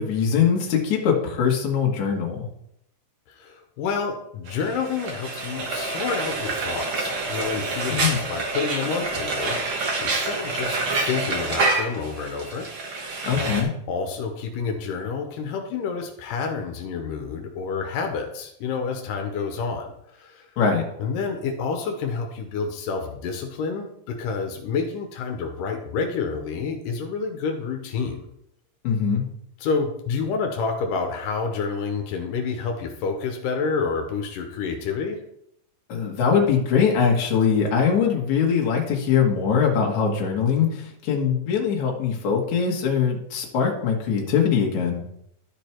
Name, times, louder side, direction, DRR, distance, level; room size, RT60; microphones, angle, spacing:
voice 1, 0.0-2.5 7.9-8.2 13.2-13.7 20.6-20.9 28.8-29.2 35.9-45.0, left 6 dB, 65° left, -1 dB, 2.8 m, -22 dB
voice 2, 3.3-10.8 11.0-12.7 12.9-13.6 13.9-20.5 21.0-28.3 29.6-35.2, left 5 dB, 90° left, 3 dB, 2.7 m, -29 dB
Frying (food), 4.5-13.6, right 3 dB, 50° right, 1.6 m, -27 dB
12.5 x 5.1 x 4.5 m, 0.75 s
omnidirectional pair, 3.8 m